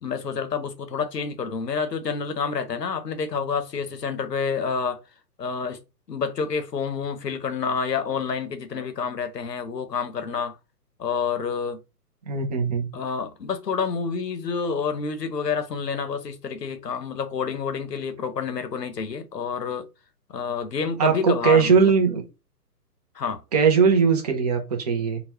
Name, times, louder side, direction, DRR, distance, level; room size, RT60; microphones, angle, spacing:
voice 1, 0.0-5.0 5.4-5.8 6.1-10.6 11.0-11.8 12.9-19.8 20.3-21.9 23.1-23.4, left 5 dB, 80° left, 0.9 m, -28 dB
voice 2, 12.3-12.9 21.0-22.2 23.5-25.2, right 6 dB, 25° right, 0.6 m, -20 dB
3.9 x 2.3 x 2.8 m
figure-of-eight pair, 130°, 49 cm